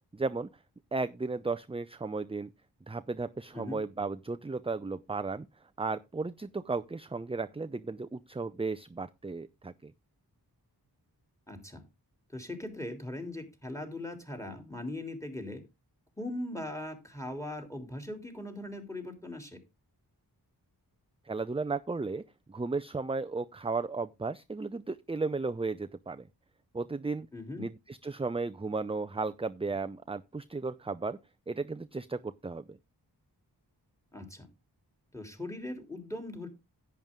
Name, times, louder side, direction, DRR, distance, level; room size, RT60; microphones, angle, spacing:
voice 1, 0.1-0.5 0.9-2.5 2.9-5.5 5.8-9.9 21.3-22.2 22.5-26.2 26.7-27.3 27.6-31.2 31.5-32.8, right 3 dB, 15° right, 0.4 m, -34 dB
voice 2, 11.5-11.8 12.3-15.6 16.2-19.6 27.3-27.7 34.1-34.5 35.1-36.5, left 1 dB, 5° left, 3.3 m, -40 dB
10.5 x 9.0 x 3.6 m
wide cardioid pair, 55°, 41 cm